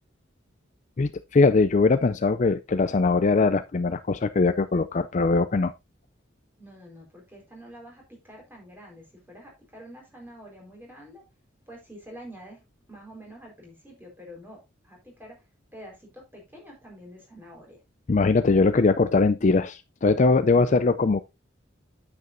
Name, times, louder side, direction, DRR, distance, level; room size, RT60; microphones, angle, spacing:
voice 1, 1.0-5.7 18.1-21.2, left 3 dB, 40° left, 0.4 m, -21 dB
voice 2, 6.6-11.2 11.7-12.6 12.9-14.6 14.8-15.4 15.7-17.8, equal, 10° right, 4.3 m, -47 dB
9.4 x 8.0 x 2.6 m
head